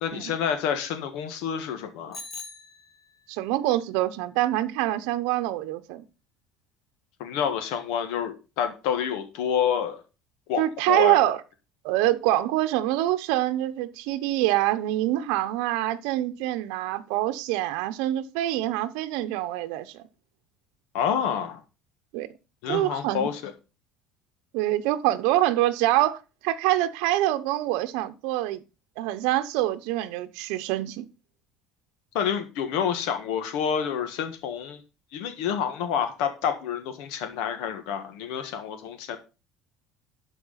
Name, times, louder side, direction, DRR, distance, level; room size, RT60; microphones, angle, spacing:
voice 1, 0.0-2.2 7.2-10.0 10.5-11.2 20.9-21.6 22.6-23.5 32.1-34.8 35.1-39.2, left 8 dB, 75° left, 1.6 m, -28 dB
Bicycle bell, 2.1-3.4, left 3 dB, 20° left, 1.7 m, -42 dB
voice 2, 3.3-6.0 10.6-11.4 11.8-20.0 22.1-22.3 22.7-23.3 24.5-28.6 29.0-31.0, right 15 dB, 75° right, 0.9 m, -25 dB
12.0 x 4.7 x 5.7 m
cardioid pair, 160°, 0 cm